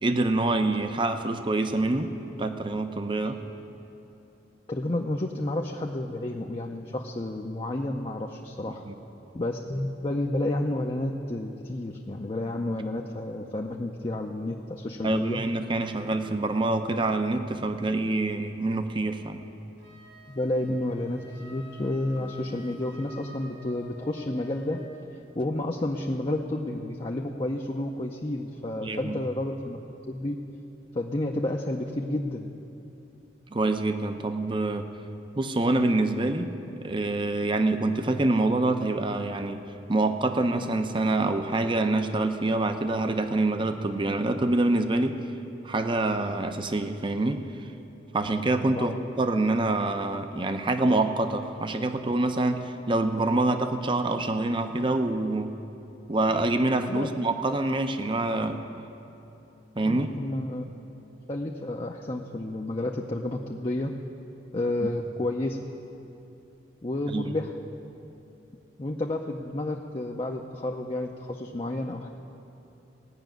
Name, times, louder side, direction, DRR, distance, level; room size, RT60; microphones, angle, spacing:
voice 1, 0.0-2.1 2.4-3.4 8.9-9.0 15.0-19.4 28.8-29.2 33.5-34.9 35.4-39.6 39.9-45.2 45.6-47.4 48.1-55.5 56.1-58.6 59.8-60.1 64.8-64.9 67.1-67.3, right 2 dB, 25° right, 8 dB, 0.6 m, -26 dB
voice 2, 4.7-8.8 9.3-15.4 16.0-16.1 20.3-24.8 25.4-29.8 30.1-30.4 30.9-32.5 48.8-49.0 56.9-57.1 59.8-60.6 61.3-63.9 64.5-65.6 66.8-67.5 68.8-72.1, left 1 dB, 30° left, 1 dB, 0.6 m, -31 dB
Wind instrument woodwind instrument, 19.8-25.0, equal, 85° right, 3.9 m, -50 dB
18.0 x 6.1 x 9.1 m, 2.8 s
head